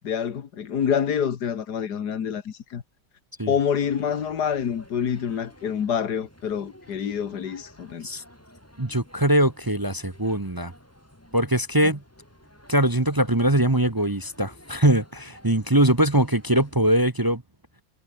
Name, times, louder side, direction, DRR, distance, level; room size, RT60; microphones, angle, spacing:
voice 1, 0.0-2.8 3.5-8.1 11.8-11.9, left 8 dB, 80° left, 2.0 m, -27 dB
sound 1, 3.8-16.8, equal, 10° left, 5.3 m, -52 dB
voice 2, 8.8-10.7 11.3-12.0 12.7-17.4, right 1 dB, 15° right, 1.0 m, -22 dB
omnidirectional pair, 1.7 m